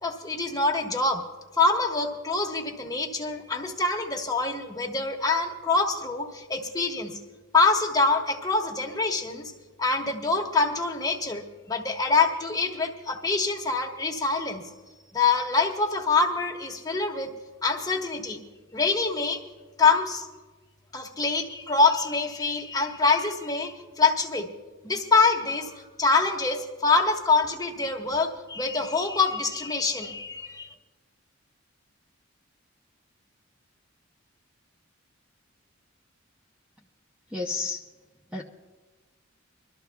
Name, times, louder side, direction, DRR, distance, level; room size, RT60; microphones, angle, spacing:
voice 1, 0.0-1.2 1.6-7.2 7.5-9.5 9.8-14.6 15.1-17.3 17.6-18.4 18.7-19.4 19.8-20.3 20.9-24.5 24.8-30.7, left 4 dB, 20° left, -1 dB, 1.4 m, -25 dB
voice 2, 37.3-37.8 38.3-38.4, left 3 dB, 5° right, -1 dB, 0.7 m, -30 dB
26.0 x 13.0 x 2.3 m, 1.3 s
head